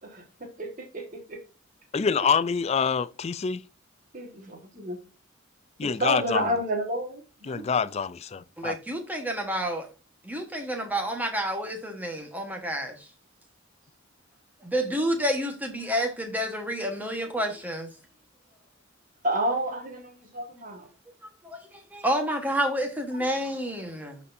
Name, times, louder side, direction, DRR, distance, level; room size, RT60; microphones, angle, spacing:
voice 1, 0.0-1.4 2.2-2.3 4.1-5.0 5.8-7.7 19.2-20.9 23.1-23.6, right 1 dB, 40° right, 1.6 m, -31 dB
voice 2, 1.9-3.6 5.8-6.4 7.5-8.8, left 6 dB, 30° left, 0.3 m, -26 dB
voice 3, 8.6-9.9 10.2-13.0 14.6-17.9 21.4-24.2, equal, 10° right, 1.3 m, -29 dB
12.5 x 4.2 x 2.6 m
head